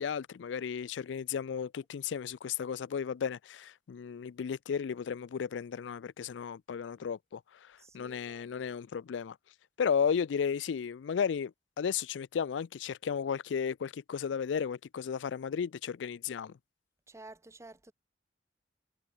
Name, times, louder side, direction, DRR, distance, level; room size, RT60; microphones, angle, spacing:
voice 1, 0.0-9.4 9.8-16.6, left 7 dB, 80° left, 0.4 m, -34 dB
voice 2, 7.8-8.4 17.1-17.9, right 2 dB, 15° right, 0.8 m, -52 dB
head